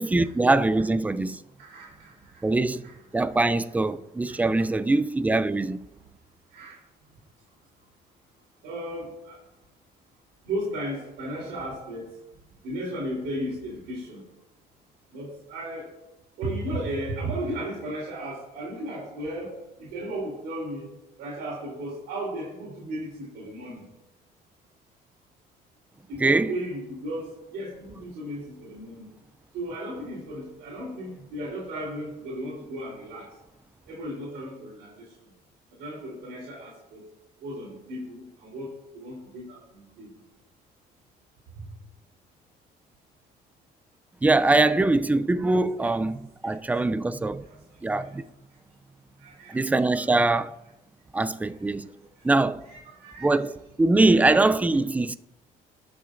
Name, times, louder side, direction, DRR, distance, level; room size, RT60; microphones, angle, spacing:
voice 1, 0.0-1.4 2.4-2.9 3.1-5.8 26.2-26.5 44.2-47.4 47.8-48.2 49.5-50.6 51.1-51.9 52.2-52.6 53.2-53.5 53.8-55.2, right 2 dB, 10° right, 0.4 m, -22 dB
voice 2, 1.6-3.0 3.3-3.4 4.3-4.7 6.5-6.8 8.6-9.4 10.4-12.1 12.6-14.2 15.1-15.9 16.4-20.9 21.2-23.8 26.1-29.1 29.5-33.3 33.9-35.1 35.7-37.1 37.4-40.1 41.6-41.7 45.8-46.0 46.4-46.6 47.4-48.2 49.2-49.7 49.9-50.0 51.4-51.5 52.2-52.3 52.6-53.3 54.1-54.2, right 1 dB, 85° right, 3.6 m, -35 dB
18.0 x 7.0 x 2.5 m
cardioid pair, 110°, 17 cm